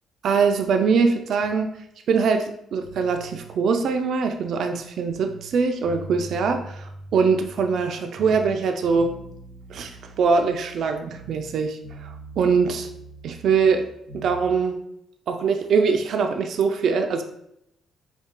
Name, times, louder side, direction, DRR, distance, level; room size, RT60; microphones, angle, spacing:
voice 1, 0.2-1.7 2.1-9.1 9.7-12.8 13.4-13.9 14.1-14.8 15.3-17.2, right 5 dB, 65° right, 5 dB, 0.5 m, -22 dB
sound 1, 2.8-5.5 5.8-7.9 8.1-11.6 11.8-14.4, right 2 dB, 75° left, 1.5 m, -42 dB
4.5 x 2.3 x 3.7 m, 0.77 s
cardioid pair, 90°, 0 cm